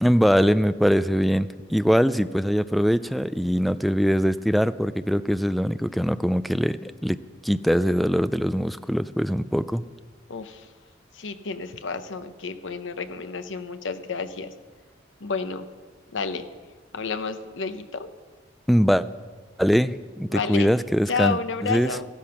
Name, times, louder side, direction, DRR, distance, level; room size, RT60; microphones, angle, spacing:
voice 1, 0.0-9.9 18.7-19.1 19.6-21.4 21.6-22.0, equal, ahead, 13 dB, 0.3 m, -22 dB
voice 2, 10.3-10.7 11.1-14.5 15.2-15.7 16.1-16.5 16.9-18.1 20.3-20.7 21.1-22.1, left 4 dB, 70° left, 10 dB, 0.9 m, -30 dB
14.5 x 13.0 x 5.8 m, 1.5 s
head